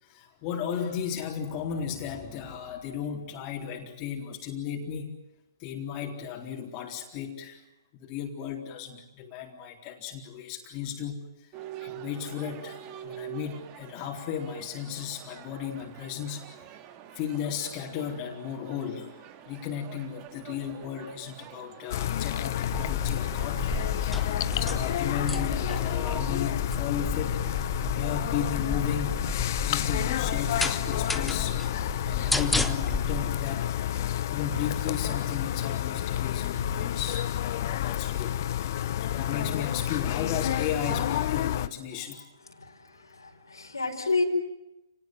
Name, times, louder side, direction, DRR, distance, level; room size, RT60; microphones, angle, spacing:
voice 1, 0.0-5.1 5.6-7.6 7.9-11.5 11.8-16.5 17.1-23.7 24.0-24.3 24.6-29.3 29.6-31.6 32.0-38.4 39.0-42.2, left 8 dB, 30° left, 0 dB, 4.0 m, -35 dB
sound 1, 11.5-26.3, right 11 dB, 30° right, 2.0 m, -46 dB
sound 2, 21.9-41.7, left 12 dB, 50° left, 0.9 m, -29 dB
sound 3, 22.7-33.2, left 2 dB, 5° left, 1.2 m, -33 dB
voice 2, 42.4-44.2, left 3 dB, 85° left, 2 dB, 5.0 m, -31 dB
29.5 x 19.0 x 9.3 m, 0.95 s
figure-of-eight pair, 130°, 2 cm